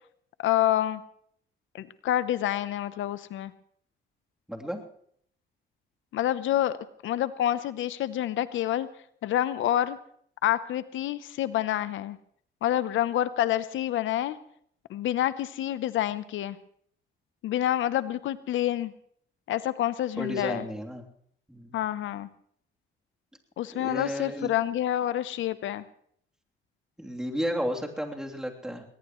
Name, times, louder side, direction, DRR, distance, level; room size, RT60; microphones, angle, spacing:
voice 1, 0.4-1.0 1.7-3.5 6.1-6.8 7.0-8.9 9.2-10.0 10.4-12.2 12.6-14.4 14.9-16.6 17.4-18.9 19.5-20.6 21.7-22.3 23.6-25.8, left 12 dB, 75° left, 15 dB, 0.8 m, -27 dB
voice 2, 4.5-4.8 20.2-21.0 21.5-21.8 23.7-24.5 27.0-28.8, equal, 5° right, 0 dB, 3.1 m, -33 dB
21.0 x 19.5 x 3.1 m, 0.64 s
cardioid pair, 90°, 20 cm